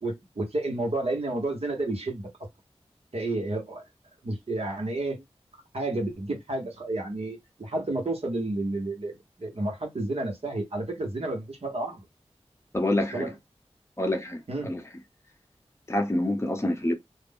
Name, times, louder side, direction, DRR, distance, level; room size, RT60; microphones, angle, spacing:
voice 1, 0.0-2.3 3.1-3.8 4.2-5.2 5.7-12.0 13.1-13.3 14.5-14.7, right 2 dB, 65° right, 1.1 m, -31 dB
voice 2, 12.7-13.3 14.0-14.8 15.9-16.9, left 1 dB, 25° left, 0.8 m, -27 dB
2.4 x 2.1 x 3.6 m
wide cardioid pair, 70°, 11 cm